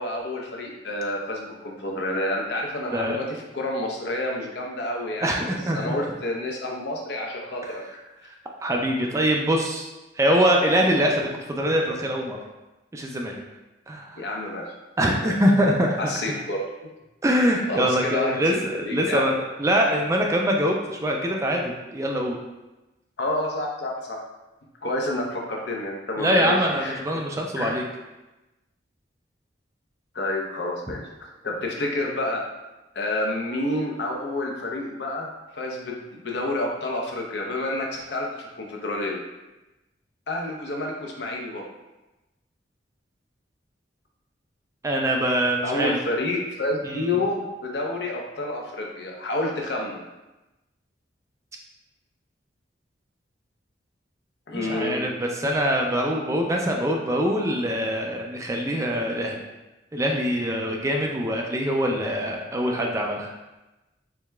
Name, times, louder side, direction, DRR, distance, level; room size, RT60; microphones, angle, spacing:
voice 1, 0.0-5.3 5.7-7.8 14.2-14.7 15.2-15.3 16.0-16.7 17.7-19.2 23.2-24.2 24.8-27.2 27.6-27.7 30.1-32.4 32.9-39.2 40.3-41.7 45.6-50.0 54.5-55.0, left 1 dB, 65° left, 0 dB, 0.7 m, -29 dB
voice 2, 5.2-6.0 8.2-8.3 8.6-9.9 10.2-12.4 12.9-13.4 13.9-14.2 15.0-16.0 17.2-22.4 26.2-27.8 44.8-46.0 46.8-47.1 54.6-59.4 59.9-63.3, equal, 15° right, 0 dB, 0.3 m, -24 dB
4.7 x 3.3 x 2.3 m, 1.0 s
head